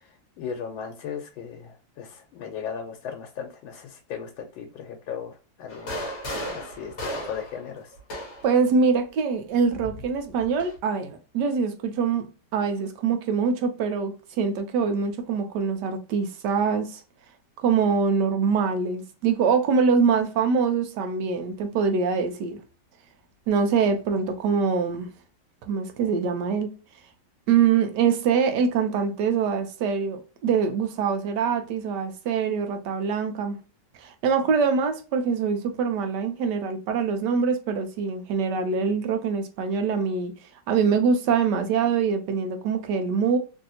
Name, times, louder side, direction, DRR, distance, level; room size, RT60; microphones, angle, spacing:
voice 1, 0.0-6.1 6.5-7.9, left 7 dB, 90° left, 1.4 m, -37 dB
sound 1, 5.7-8.6 9.7-10.8, equal, 45° left, 1.1 m, -35 dB
voice 2, 8.4-12.3 12.5-17.0 17.6-22.6 23.5-25.0 25.7-26.7 27.5-33.6 34.0-40.3 40.7-43.4, right 6 dB, 70° right, 1.1 m, -24 dB
3.2 x 2.7 x 2.7 m
omnidirectional pair, 2.1 m